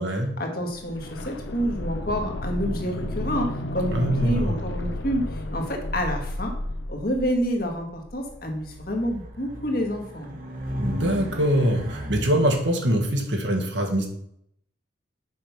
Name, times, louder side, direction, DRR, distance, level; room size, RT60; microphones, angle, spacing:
voice 1, 0.0-6.5 6.9-10.4, equal, 50° left, 2 dB, 1.5 m, -28 dB
sound 1, 0.7-8.5 8.8-8.9, left 1 dB, 70° left, 0.8 m, -32 dB
voice 2, 3.9-4.6 10.8-14.1, right 1 dB, 70° right, 2 dB, 1.6 m, -23 dB
Race car auto racing, 8.3-12.7, equal, 45° right, 1.2 m, -35 dB
6.4 x 5.2 x 5.7 m, 0.72 s
head